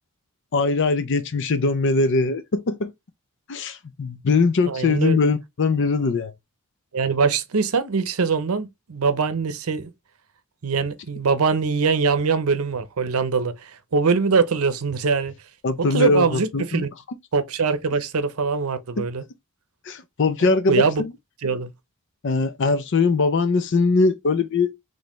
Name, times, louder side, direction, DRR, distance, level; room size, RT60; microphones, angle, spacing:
voice 1, 0.5-2.9 3.5-6.3 15.6-16.8 19.9-21.1 22.2-24.7, left 3 dB, 55° left, 0.5 m, -21 dB
voice 2, 4.7-5.2 6.9-9.9 10.6-15.3 15.8-16.9 17.3-19.2 20.4-21.0 21.4-21.7, right 5 dB, 80° right, 0.7 m, -23 dB
4.2 x 3.3 x 3.0 m
head